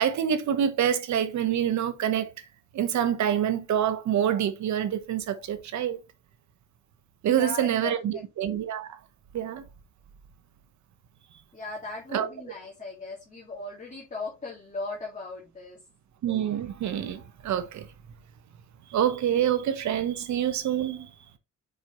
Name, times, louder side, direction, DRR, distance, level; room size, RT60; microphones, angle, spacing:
voice 1, 0.0-2.3 2.7-6.0 7.2-9.0 9.3-9.6 12.1-12.3 16.2-17.9 18.9-21.1, right 9 dB, 70° right, 1.2 m, -26 dB
voice 2, 7.3-8.2 11.5-15.8, left 3 dB, 25° left, 2.3 m, -38 dB
6.2 x 5.1 x 3.2 m
cardioid pair, 90°, 30 cm